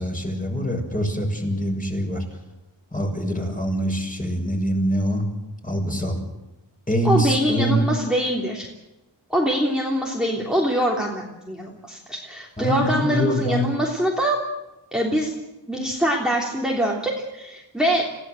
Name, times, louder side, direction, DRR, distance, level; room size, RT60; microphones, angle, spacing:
voice 1, 0.0-2.2 2.9-5.2 5.6-6.2 6.9-7.8 12.6-13.7, equal, 20° left, 1 dB, 6.7 m, -24 dB
voice 2, 7.0-8.7 9.3-14.4 14.9-15.3 15.7-18.0, equal, ahead, -3 dB, 3.3 m, -24 dB
29.0 x 16.5 x 7.8 m, 1.0 s
wide cardioid pair, 95°, 45 cm